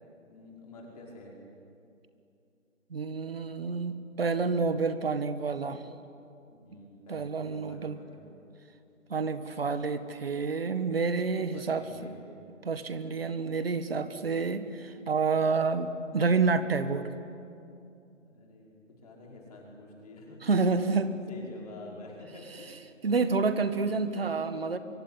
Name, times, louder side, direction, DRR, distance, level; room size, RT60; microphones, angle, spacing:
voice 1, 0.3-1.4 6.5-8.2 11.5-12.3 18.2-20.6 21.3-22.8 23.9-24.2, left 2 dB, 30° left, -2 dB, 5.5 m, -48 dB
voice 2, 2.9-5.8 7.1-8.0 9.1-12.1 12.6-17.2 20.4-21.1 23.0-24.8, right 4 dB, 50° right, 11 dB, 1.8 m, -29 dB
25.0 x 24.5 x 9.8 m, 2.6 s
figure-of-eight pair, 170°, 39 cm